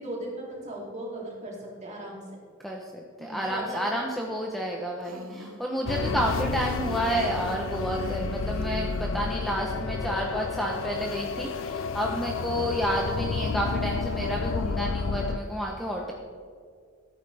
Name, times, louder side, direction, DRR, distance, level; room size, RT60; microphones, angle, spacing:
voice 1, 0.0-2.2 3.2-3.9 5.1-5.5 12.1-12.5, right 1 dB, 35° right, -4 dB, 2.9 m, -38 dB
voice 2, 2.6-16.1, equal, ahead, -1 dB, 0.8 m, -30 dB
Female speech woman speaking, 5.0-5.6 7.1-9.4, right 1 dB, 90° right, 1.0 m, -44 dB
sound 1, 5.9-15.4, left 4 dB, 70° left, 0.4 m, -31 dB
14.0 x 8.9 x 3.4 m, 2.1 s
head